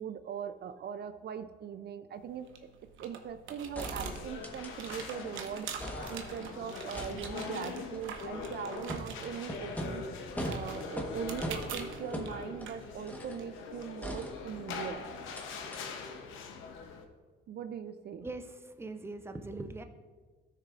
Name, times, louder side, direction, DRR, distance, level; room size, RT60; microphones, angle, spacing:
voice 1, 0.0-2.7 3.0-5.7 6.0-10.0 10.4-15.0 17.5-18.3, right 8 dB, 55° right, 10 dB, 0.4 m, -40 dB
Unlocking Door, 2.1-13.8, right 6 dB, 80° right, 0.9 m, -46 dB
sound 1, 3.7-5.3 5.6-6.5 6.9-13.5 14.0-14.9 15.3-15.4 15.7-15.8, equal, 10° left, 1.1 m, -42 dB
sound 2, 4.1-17.1, left 5 dB, 90° left, 0.8 m, -43 dB
voice 2, 18.2-19.8, right 2 dB, 10° right, 7 dB, 0.6 m, -41 dB
13.0 x 6.5 x 2.4 m, 1.4 s
cardioid pair, 90°, 20 cm